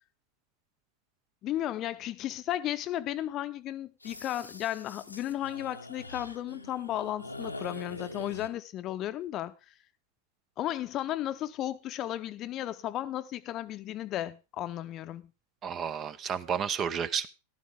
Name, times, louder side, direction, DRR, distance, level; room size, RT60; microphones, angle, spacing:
voice 1, 1.4-9.5 10.6-15.3, left 13 dB, 35° left, 0.7 m, -34 dB
sound 1, 4.0-8.5, left 2 dB, 85° left, 1.0 m, -44 dB
voice 2, 15.6-17.3, right 7 dB, 30° right, 0.7 m, -31 dB
14.0 x 12.0 x 3.7 m
figure-of-eight pair, 90°, 0 cm